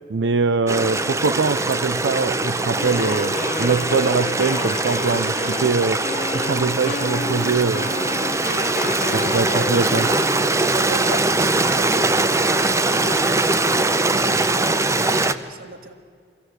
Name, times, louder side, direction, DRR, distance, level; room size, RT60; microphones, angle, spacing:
voice 1, 0.1-6.0 6.3-7.9 9.1-10.1, right 4 dB, 75° right, 12 dB, 0.5 m, -22 dB
Stream, 0.7-15.3, right 2 dB, 15° right, 0.6 m, -22 dB
Wind instrument woodwind instrument, 2.7-10.7, left 4 dB, 40° left, 0.5 m, -31 dB
voice 2, 10.7-15.9, right 2 dB, 55° right, 6 dB, 1.8 m, -36 dB
23.0 x 16.0 x 7.9 m, 2.1 s
head